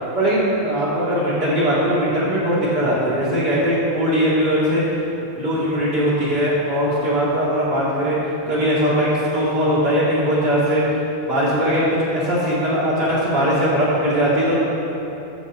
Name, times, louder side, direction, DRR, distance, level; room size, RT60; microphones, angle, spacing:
voice 1, 0.1-4.8 5.4-8.2 8.5-10.8 11.3-14.6, equal, 35° right, -10 dB, 1.9 m, -20 dB
12.0 x 4.2 x 8.0 m, 3.0 s
omnidirectional pair, 5.2 m